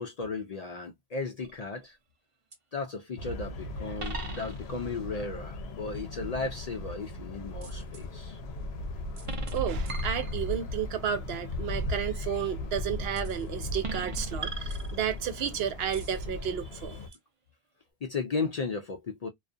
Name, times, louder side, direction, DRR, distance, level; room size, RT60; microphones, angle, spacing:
voice 1, 0.0-2.0 2.7-8.4 18.0-19.3, left 4 dB, 55° left, 0.4 m, -35 dB
sound 1, 1.4-1.8 2.5-2.6 4.0-4.9 7.6-8.0 9.2-10.8 13.2-13.4 13.8-15.4 15.9-16.2 17.1-17.2, right 2 dB, 40° right, 0.6 m, -39 dB
sound 2, 3.2-17.1, left 2 dB, 85° left, 0.8 m, -37 dB
voice 2, 9.5-17.0, right 9 dB, 80° right, 0.8 m, -32 dB
2.4 x 2.3 x 2.5 m
omnidirectional pair, 1.0 m